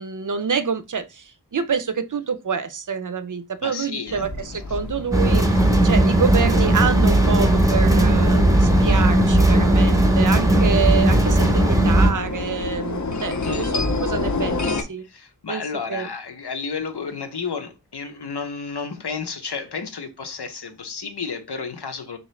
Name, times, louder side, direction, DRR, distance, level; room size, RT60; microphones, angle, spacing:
voice 1, 0.0-15.1 15.5-15.6 15.9-16.1, right 6 dB, 50° right, 0.5 m, -27 dB
voice 2, 3.6-4.3 13.4-13.7 15.1-22.2, left 5 dB, 80° left, 0.7 m, -31 dB
sound 1, 4.1-14.8, left 3 dB, 45° left, 0.6 m, -29 dB
sound 2, 5.1-12.1, right 1 dB, 10° right, 0.6 m, -17 dB
3.7 x 2.8 x 3.1 m
wide cardioid pair, 45°, 40 cm